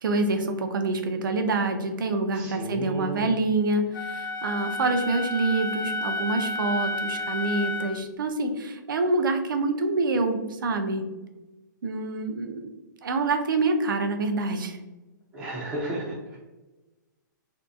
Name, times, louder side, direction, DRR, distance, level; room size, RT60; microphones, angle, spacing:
voice 1, 0.0-11.1 11.8-12.7 13.0-14.8, right 3 dB, 80° right, 6 dB, 0.4 m, -26 dB
voice 2, 2.3-3.3 15.3-16.4, right 1 dB, 10° right, -7 dB, 0.5 m, -33 dB
Wind instrument woodwind instrument, 3.9-8.0, left 2 dB, 85° left, 0.4 m, -31 dB
2.6 x 2.1 x 2.4 m, 1.1 s
hypercardioid pair, 155°, 11 cm